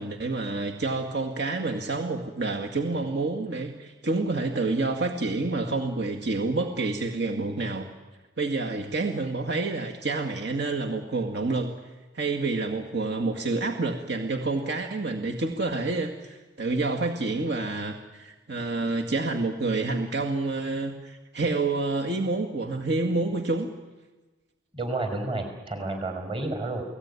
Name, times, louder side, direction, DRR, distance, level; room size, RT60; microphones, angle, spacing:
voice 1, 0.0-7.9 8.4-11.7 12.1-23.7, right 3 dB, 65° right, 3 dB, 2.1 m, -28 dB
voice 2, 24.7-26.8, right 2 dB, 30° right, 6 dB, 4.8 m, -30 dB
29.5 x 18.5 x 9.8 m, 1.2 s
head